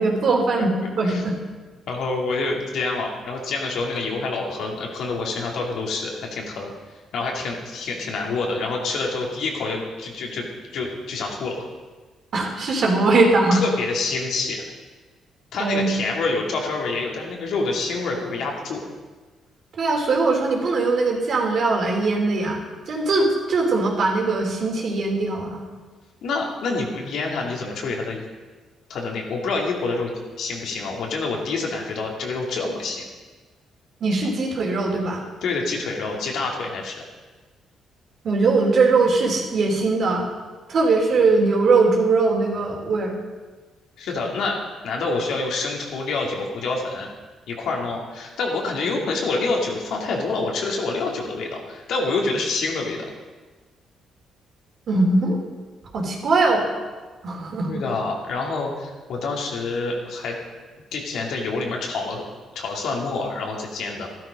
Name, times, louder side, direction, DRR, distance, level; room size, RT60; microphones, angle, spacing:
voice 1, 0.0-1.4 12.3-13.6 15.6-15.9 19.7-22.6 22.9-25.6 34.0-35.2 38.2-40.3 40.7-43.1 54.9-55.4 55.9-56.7 57.2-57.8, right 3 dB, 60° right, 0 dB, 3.3 m, -20 dB
voice 2, 1.9-6.7 7.1-10.5 10.7-11.6 13.5-14.6 15.5-18.8 26.2-28.2 28.9-33.0 35.4-37.0 44.0-44.6 44.8-47.1 47.5-53.1 57.7-60.4 60.9-62.2 62.5-64.1, left 3 dB, 75° left, 0 dB, 2.8 m, -27 dB
13.0 x 12.0 x 5.3 m, 1.3 s
cardioid pair, 90°, 0 cm